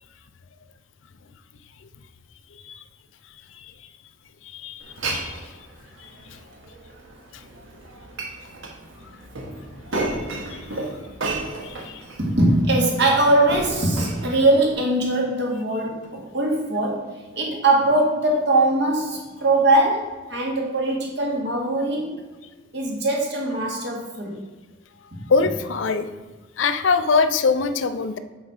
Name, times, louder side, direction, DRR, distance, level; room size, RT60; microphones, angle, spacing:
voice 1, 4.5-5.4 6.0-6.1 11.6-12.0 25.3-26.1 26.6-28.2, left 4 dB, 75° left, 11 dB, 0.5 m, -23 dB
Glass, 4.8-14.7, right 2 dB, 80° right, 1.3 m, -33 dB
voice 2, 12.2-22.2 22.7-24.4 25.1-25.2, right 2 dB, 60° right, -1 dB, 1.7 m, -21 dB
7.3 x 4.3 x 4.8 m, 1.3 s
head